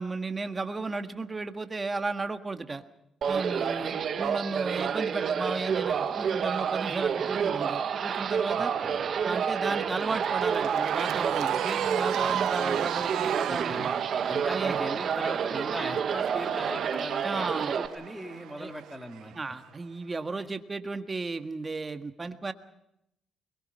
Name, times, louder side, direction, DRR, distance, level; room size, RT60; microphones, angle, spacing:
voice 1, 0.0-2.8 3.3-8.7 9.2-13.9 14.5-14.8 17.2-17.7 18.6-18.7 19.4-22.5, right 3 dB, 25° right, 8 dB, 1.7 m, -34 dB
sound 1, 3.2-17.9, right 7 dB, 55° right, 1.5 m, -29 dB
voice 2, 3.6-3.9 8.6-9.0 13.5-13.9 14.3-19.4 20.4-20.5, equal, ahead, 4 dB, 3.1 m, -39 dB
Cheering / Crowd, 4.5-19.8, right 11 dB, 80° right, 0.9 m, -38 dB
23.0 x 22.5 x 5.6 m, 0.79 s
cardioid pair, 90°, 0 cm